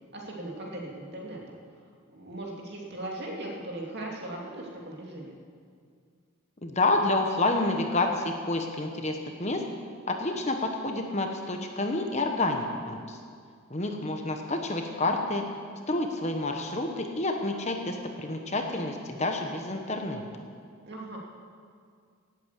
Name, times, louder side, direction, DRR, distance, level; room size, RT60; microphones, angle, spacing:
voice 1, 0.1-1.4 2.1-5.3 20.8-21.2, right 1 dB, 50° right, -1 dB, 2.7 m, -38 dB
voice 2, 6.6-9.6 10.1-13.2 13.7-15.4 15.9-20.2, left 2 dB, 30° left, 4 dB, 1.1 m, -29 dB
18.0 x 8.7 x 8.2 m, 2.1 s
head